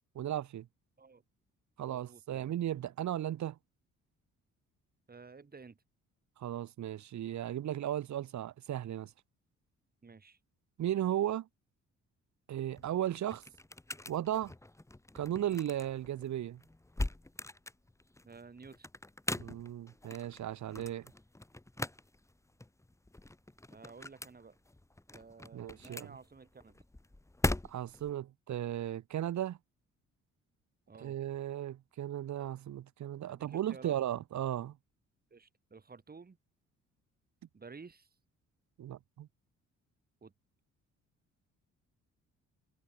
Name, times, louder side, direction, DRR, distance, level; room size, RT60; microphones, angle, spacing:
voice 1, 0.1-0.7 1.8-3.6 6.4-9.1 10.8-11.5 12.5-13.4 14.1-14.5 15.1-16.6 19.3-21.1 25.5-26.1 27.7-29.6 31.0-34.8 38.8-39.3, right 11 dB, 70° right, 2.6 m, -36 dB
voice 2, 1.9-2.5 5.1-5.8 10.0-10.4 18.2-18.9 23.7-24.6 25.1-26.8 30.9-31.2 33.3-34.0 35.3-36.4 37.5-38.1 40.2-40.3, right 4 dB, 30° right, 5.8 m, -53 dB
sound 1, 12.6-28.1, left 1 dB, 10° left, 2.4 m, -41 dB
cardioid pair, 90°, 30 cm